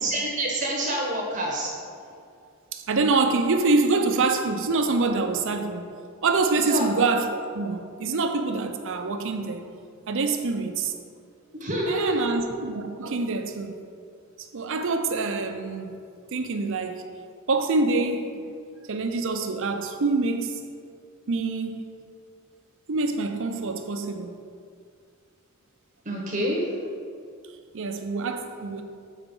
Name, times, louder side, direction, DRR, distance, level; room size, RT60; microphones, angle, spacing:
voice 1, 0.0-1.7 6.7-6.8 11.5-12.3 26.1-26.6, right 1 dB, 35° right, -1 dB, 0.9 m, -27 dB
voice 2, 2.7-5.9 6.2-9.6 10.1-10.9 11.9-13.7 14.5-16.0 16.3-17.0 17.5-18.4 18.9-20.6 21.3-21.8 22.9-24.3 27.7-28.8, right 3 dB, 60° right, 6 dB, 0.6 m, -25 dB
7.2 x 4.3 x 5.3 m, 2.2 s
head